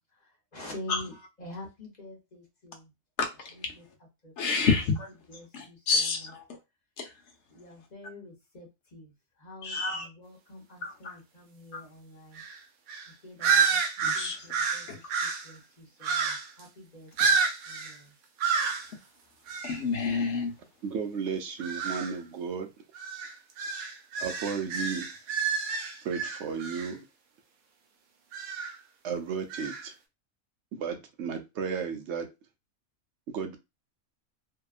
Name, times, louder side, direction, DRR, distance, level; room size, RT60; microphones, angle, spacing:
voice 1, 0.0-2.9 3.5-3.8 4.2-4.7 5.3-6.3 7.5-12.4 13.1-18.1, left 1 dB, 35° left, 0.8 m, -47 dB
voice 2, 3.2-3.7 4.4-5.1 5.5-6.4 7.0-7.1 9.6-10.1 10.8-11.2 11.7-11.8 14.0-14.4 14.9-15.0 19.6-20.5, left 4 dB, 65° left, 0.9 m, -29 dB
sound 1, 12.4-12.6 12.9-13.1 13.4-15.5 16.0-16.6 17.2-18.0 18.4-18.9 19.5-19.8 21.6-22.1 22.9-26.9 28.3-28.8 29.5-29.8, right 5 dB, 85° right, 1.1 m, -29 dB
voice 3, 20.8-22.7 24.2-25.1 26.0-27.0 29.0-29.9 30.7-32.3 33.3-33.6, right 6 dB, 65° right, 0.8 m, -33 dB
2.7 x 2.2 x 2.4 m
omnidirectional pair, 1.4 m